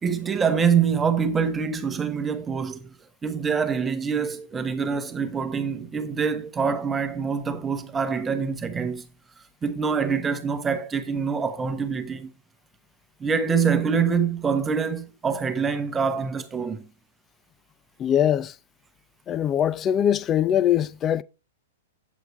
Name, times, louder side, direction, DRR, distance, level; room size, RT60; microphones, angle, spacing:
voice 1, 0.0-2.9 3.2-9.0 9.6-12.3 13.2-16.9, right 6 dB, 15° right, 1.0 m, -25 dB
voice 2, 18.0-18.5 19.3-21.2, left 10 dB, 25° left, 0.4 m, -22 dB
8.4 x 7.8 x 3.0 m
hypercardioid pair, 120°, 0 cm